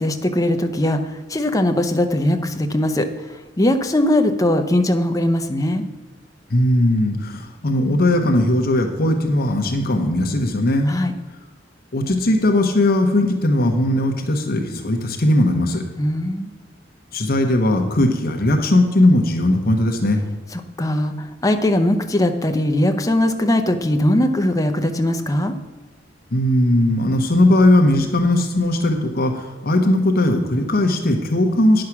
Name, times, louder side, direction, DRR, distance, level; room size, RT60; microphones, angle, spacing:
voice 1, 0.0-5.8 10.9-11.1 16.0-16.5 20.5-25.6, left 1 dB, 20° left, 6 dB, 0.7 m, -20 dB
voice 2, 6.5-11.0 11.9-15.8 17.1-20.2 26.3-31.8, left 1 dB, 55° left, 3 dB, 1.0 m, -18 dB
9.8 x 6.5 x 5.9 m, 1.3 s
head